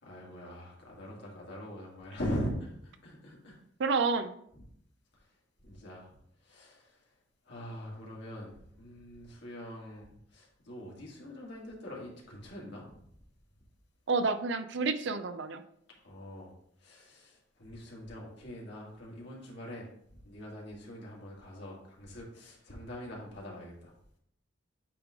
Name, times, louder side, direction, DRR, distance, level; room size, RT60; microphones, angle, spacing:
voice 1, 0.0-3.6 4.5-4.6 5.1-5.3 5.6-7.1 7.5-13.0 16.0-16.5 16.8-23.9, equal, 65° left, -4 dB, 2.0 m, -42 dB
voice 2, 3.8-4.3 14.1-15.6, right 4 dB, 65° right, 10 dB, 0.5 m, -29 dB
8.5 x 3.2 x 3.7 m, 0.69 s
head